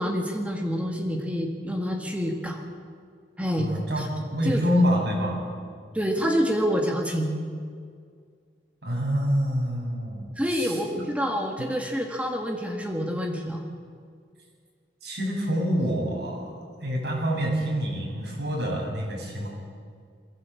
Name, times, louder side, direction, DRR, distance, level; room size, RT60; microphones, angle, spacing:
voice 1, 0.0-2.6 3.4-4.1 4.4-4.8 5.9-7.4 10.4-13.6, equal, 10° right, 1 dB, 1.9 m, -27 dB
voice 2, 3.5-5.4 8.8-11.0 15.0-16.5 16.8-19.5, equal, 70° right, -3 dB, 7.8 m, -27 dB
22.5 x 16.5 x 8.5 m, 2.1 s
head